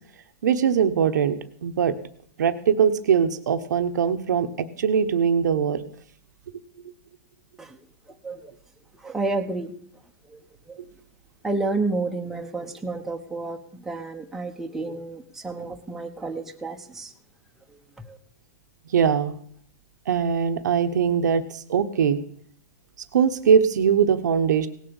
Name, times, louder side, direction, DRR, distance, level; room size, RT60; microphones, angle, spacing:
voice 1, 0.4-1.3 1.6-1.9 2.4-5.8 18.9-19.3 20.1-22.2 23.1-24.7, right 7 dB, 85° right, 8 dB, 1.1 m, -21 dB
voice 2, 8.9-9.8 10.3-10.4 10.7-10.8 11.4-17.1 18.1-18.2, right 3 dB, 5° right, 2 dB, 1.1 m, -30 dB
17.5 x 7.6 x 7.1 m, 0.63 s
hypercardioid pair, 145°, 9 cm